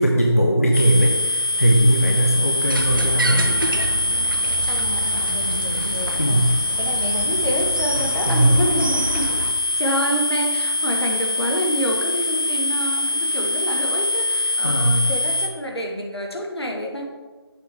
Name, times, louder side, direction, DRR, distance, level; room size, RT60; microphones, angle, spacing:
voice 1, 0.0-3.5 6.2-6.6 8.3-8.7 9.1-9.2 14.4-15.1, equal, 35° left, 0 dB, 0.5 m, -19 dB
sound 1, 0.7-15.5, left 1 dB, 55° left, 0.9 m, -23 dB
sound 2, 2.6-9.5, right 1 dB, 55° right, 0.6 m, -29 dB
voice 2, 4.7-6.5 6.8-9.3 9.8-17.1, equal, 75° left, 1 dB, 1.4 m, -28 dB
7.4 x 6.0 x 3.4 m, 1.3 s
figure-of-eight pair, 180°, 14 cm